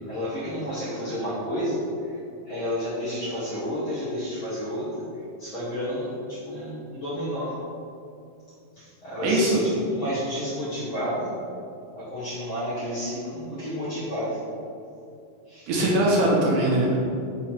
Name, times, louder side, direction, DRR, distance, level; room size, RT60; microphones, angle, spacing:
voice 1, 0.1-7.6 8.7-11.4 12.0-14.4 15.5-15.7, equal, 50° left, -12 dB, 1.6 m, -31 dB
voice 2, 9.2-9.6 15.7-17.1, right 1 dB, 70° right, -4 dB, 2.2 m, -21 dB
6.4 x 3.1 x 5.7 m, 2.6 s
omnidirectional pair, 4.1 m